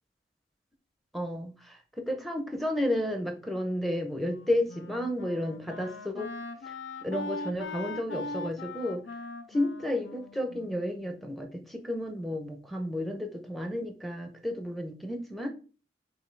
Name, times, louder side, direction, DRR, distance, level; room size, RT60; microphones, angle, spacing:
voice 1, 1.1-6.3 7.0-9.1 9.5-15.5, left 1 dB, ahead, 4 dB, 0.6 m, -32 dB
Wind instrument woodwind instrument, 4.2-11.4, left 2 dB, 80° left, 0.5 m, -41 dB
5.4 x 3.1 x 3.2 m, 0.36 s
head